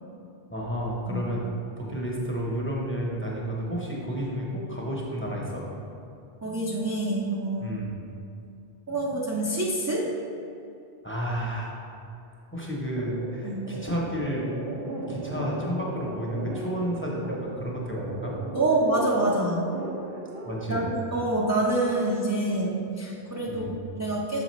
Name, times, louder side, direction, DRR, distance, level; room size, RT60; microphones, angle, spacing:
voice 1, 0.5-1.5 1.8-5.7 7.6-7.9 11.0-11.8 12.5-14.6 15.1-18.3 20.1-20.2 20.5-20.9 23.5-23.7, equal, 15° left, -4 dB, 0.7 m, -31 dB
voice 2, 6.4-7.8 8.9-10.1 13.4-13.7 18.5-19.7 20.7-24.4, right 2 dB, 25° right, -5 dB, 0.4 m, -26 dB
sound 1, 12.9-20.5, right 2 dB, 75° right, 1.0 m, -37 dB
6.8 x 4.8 x 3.1 m, 2.7 s
omnidirectional pair, 1.1 m